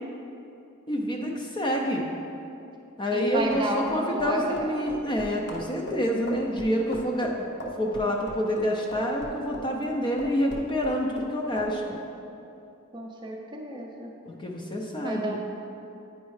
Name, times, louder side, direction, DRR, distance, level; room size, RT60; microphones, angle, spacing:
voice 1, 0.9-2.1 3.0-7.5 7.8-12.0 14.4-15.4, equal, 20° left, 0 dB, 0.5 m, -27 dB
voice 2, 3.1-5.0 12.9-14.1 15.0-15.4, right 1 dB, 20° right, 0 dB, 0.6 m, -32 dB
sound 1, 3.3-9.9 10.2-11.3 11.6-11.7, left 1 dB, 50° left, 0.8 m, -38 dB
9.0 x 5.2 x 3.2 m, 2.7 s
head